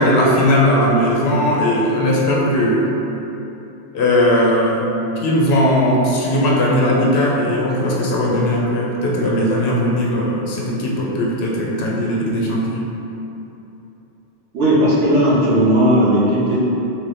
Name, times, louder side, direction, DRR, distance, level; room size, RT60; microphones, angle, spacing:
voice 1, 0.0-2.9 3.9-4.9 5.2-12.9, left 1 dB, 65° left, -3 dB, 0.7 m, -18 dB
voice 2, 14.5-16.6, equal, 80° right, -7 dB, 1.1 m, -15 dB
3.0 x 2.6 x 3.2 m, 3.0 s
omnidirectional pair, 1.2 m